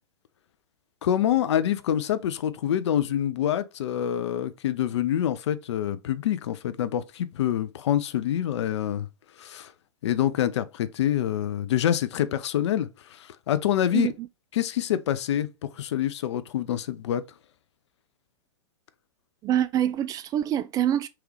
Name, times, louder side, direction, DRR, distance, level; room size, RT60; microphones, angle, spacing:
voice 1, 1.0-9.1 9.4-9.7 10.0-14.1 14.6-15.5 15.7-17.2, left 11 dB, 65° left, 0.5 m, -26 dB
voice 2, 13.9-14.3 19.4-21.1, right 11 dB, 25° right, 0.3 m, -25 dB
3.6 x 3.0 x 3.1 m
hypercardioid pair, 110°, 15 cm